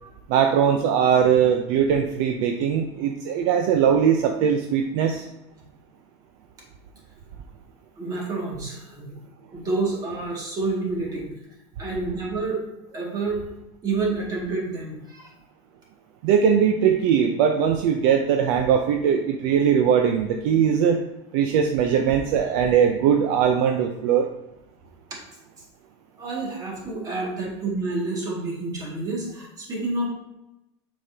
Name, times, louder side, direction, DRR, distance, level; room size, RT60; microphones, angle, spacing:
voice 1, 0.3-5.3 16.2-21.0 21.3-24.3, right 8 dB, 60° right, 5 dB, 0.6 m, -20 dB
voice 2, 8.0-9.2 9.5-11.3 11.8-12.6 12.9-13.4 13.8-15.3 26.2-30.1, right 3 dB, 25° right, -2 dB, 2.0 m, -28 dB
6.7 x 5.2 x 2.8 m, 0.90 s
supercardioid pair, 140°, 15 cm